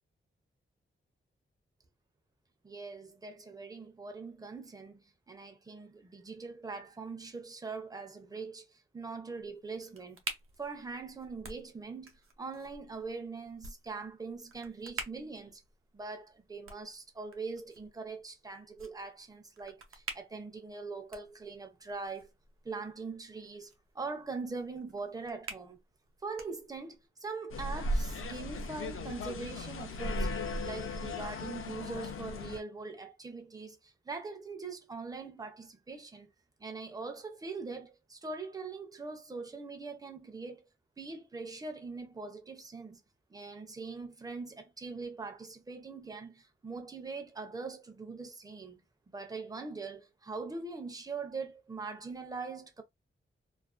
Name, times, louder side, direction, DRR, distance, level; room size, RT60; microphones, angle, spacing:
voice 1, 2.6-10.2 10.6-12.1 12.4-15.6 15.9-22.3 22.6-25.8 26.2-30.3 30.6-36.3 36.6-40.6 41.0-43.0 43.3-52.8, right 4 dB, 20° right, 0.4 m, -42 dB
sound 1, 9.3-27.1, right 4 dB, 85° right, 0.6 m, -49 dB
sound 2, 27.5-32.6, left 1 dB, 75° left, 0.5 m, -36 dB
2.4 x 2.3 x 2.3 m
wide cardioid pair, 180°, 21 cm